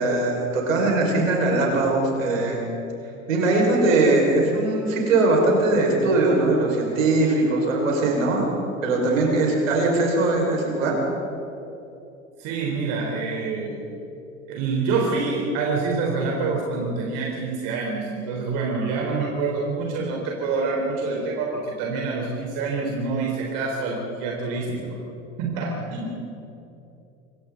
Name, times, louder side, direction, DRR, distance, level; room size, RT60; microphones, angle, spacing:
voice 1, 0.0-2.6 3.3-8.5 8.8-11.0, right 2 dB, 75° right, -1 dB, 5.5 m, -21 dB
voice 2, 12.4-13.8 14.5-24.8 25.4-26.2, right 4 dB, 50° right, -1 dB, 4.0 m, -26 dB
27.0 x 24.0 x 4.0 m, 2.8 s
figure-of-eight pair, 80°, 40 cm